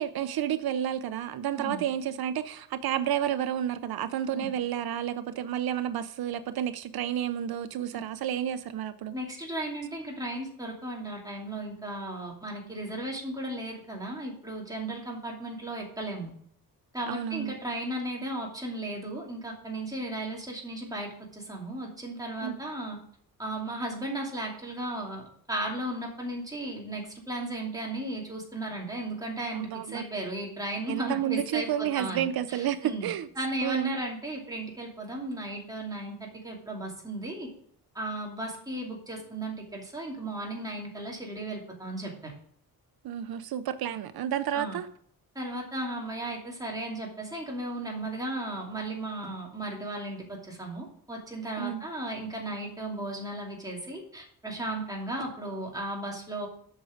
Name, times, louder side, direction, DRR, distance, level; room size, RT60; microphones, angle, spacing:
voice 1, 0.0-9.1 17.1-17.6 22.4-22.6 29.5-30.1 30.9-33.3 33.6-34.0 43.0-44.9 51.6-51.8, right 10 dB, 85° right, 0.6 m, -31 dB
voice 2, 9.1-16.3 16.9-23.0 23.4-33.1 33.4-37.5 37.9-42.3 44.5-44.8 45.3-56.5, right 1 dB, 10° right, 2.7 m, -35 dB
8.1 x 6.2 x 6.4 m
wide cardioid pair, 140°, 36 cm